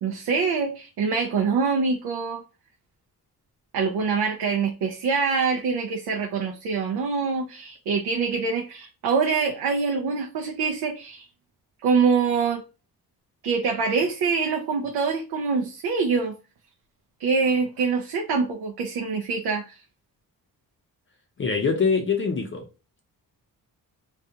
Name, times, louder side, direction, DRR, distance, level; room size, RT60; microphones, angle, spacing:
voice 1, 0.0-2.4 3.7-11.3 11.8-12.6 13.4-16.3 17.2-19.8, right 5 dB, 80° right, 0.5 m, -25 dB
voice 2, 21.4-22.6, left 5 dB, 35° left, 0.5 m, -23 dB
2.5 x 2.3 x 2.6 m
cardioid pair, 100°, 37 cm